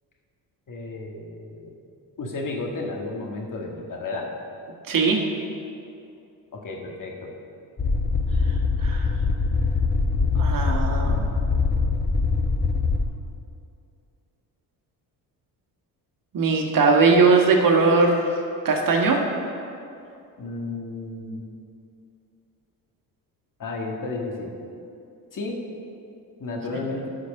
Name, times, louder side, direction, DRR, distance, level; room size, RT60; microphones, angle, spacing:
voice 1, 0.7-1.7 2.2-4.3 6.5-7.3 20.4-21.4 23.6-24.5 25.3-25.5 26.4-27.1, left 3 dB, 50° left, 0 dB, 1.9 m, -32 dB
voice 2, 4.9-5.2 8.8-9.1 10.3-11.3 16.3-18.3 18.6-19.2, right 4 dB, 50° right, 1 dB, 1.7 m, -19 dB
sound 1, 7.8-13.0, left 4 dB, 25° left, 1.0 m, -23 dB
12.0 x 5.0 x 6.5 m, 2.6 s
supercardioid pair, 70°, 41 cm